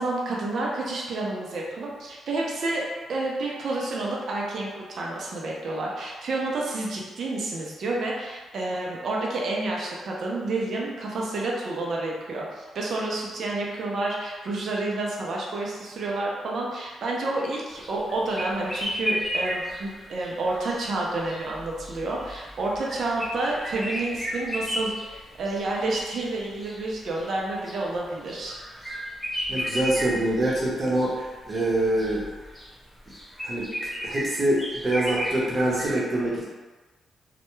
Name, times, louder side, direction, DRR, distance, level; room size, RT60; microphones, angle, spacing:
voice 1, 0.0-2.8 3.1-28.6, right 2 dB, 65° right, -3 dB, 0.5 m, -29 dB
sound 1, 17.7-35.9, equal, ahead, 0.5 m, -34 dB
voice 2, 29.5-32.3 33.4-36.4, right 1 dB, 35° right, -4 dB, 0.7 m, -25 dB
2.2 x 2.1 x 3.0 m, 1.3 s
cardioid pair, 90°, 0 cm